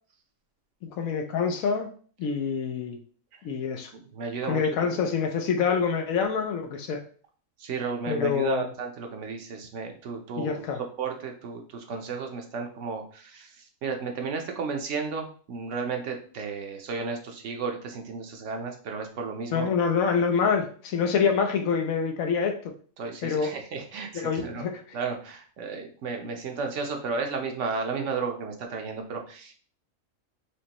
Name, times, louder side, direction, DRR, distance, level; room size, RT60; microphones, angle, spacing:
voice 1, 0.8-1.9 2.2-3.0 3.4-3.9 4.5-7.0 8.1-8.6 10.4-10.8 19.5-22.7 23.2-23.5 24.1-24.8, left 6 dB, 80° left, 4 dB, 1.1 m, -26 dB
voice 2, 3.9-5.1 7.6-10.7 11.0-19.7 23.0-24.6 24.9-29.5, right 4 dB, 65° right, 4 dB, 1.0 m, -33 dB
5.1 x 3.1 x 2.9 m, 0.43 s
omnidirectional pair, 1.4 m